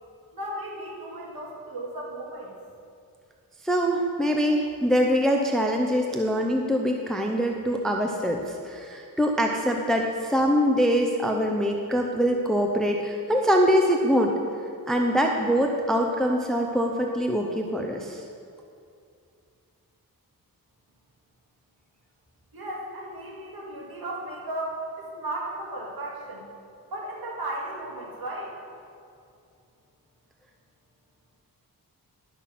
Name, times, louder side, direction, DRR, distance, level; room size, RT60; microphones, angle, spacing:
voice 1, 0.3-2.5 22.5-24.8 25.1-26.5 26.9-28.5, right 1 dB, 80° right, -4 dB, 2.3 m, -35 dB
voice 2, 3.6-14.3 14.9-18.2, equal, ahead, 2 dB, 0.5 m, -24 dB
11.0 x 6.1 x 5.8 m, 2.5 s
wide cardioid pair, 145°, 36 cm